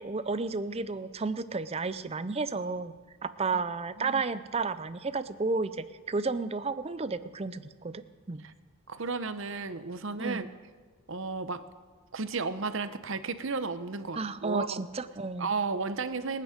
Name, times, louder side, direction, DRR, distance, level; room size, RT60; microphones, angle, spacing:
voice 1, 0.0-3.0 3.2-8.0 8.3-8.4 10.2-10.5 14.2-15.5, right 4 dB, 30° right, 14 dB, 0.5 m, -32 dB
voice 2, 8.9-10.5 11.1-11.6 12.1-14.8 15.4-16.4, right 4 dB, 60° right, 11 dB, 0.8 m, -33 dB
26.5 x 9.1 x 5.1 m, 1.5 s
head